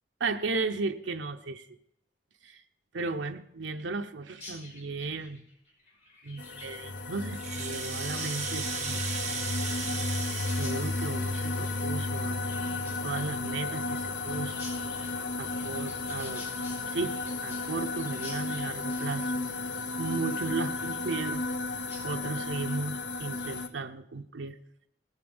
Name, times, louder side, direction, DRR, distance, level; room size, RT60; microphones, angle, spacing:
voice 1, 0.2-1.7 2.4-2.6 2.9-5.4 6.2-9.1 9.3-9.7 10.5-12.4 13.0-14.6 15.0-16.5 16.9-17.1 17.4-19.3 20.0-21.5 22.0-24.6, right 3 dB, 85° right, 6 dB, 0.8 m, -35 dB
Chirp tweet, 4.3-21.6 21.9-22.0 22.4-22.8 23.1-23.6, left 2 dB, 35° left, 5.8 m, -50 dB
sound 1, 6.4-23.7, left 3 dB, 70° left, 1.0 m, -33 dB
Rattle (instrument), 7.2-12.0, right 6 dB, 40° right, 1.4 m, -37 dB
19.0 x 8.3 x 5.4 m, 0.76 s
head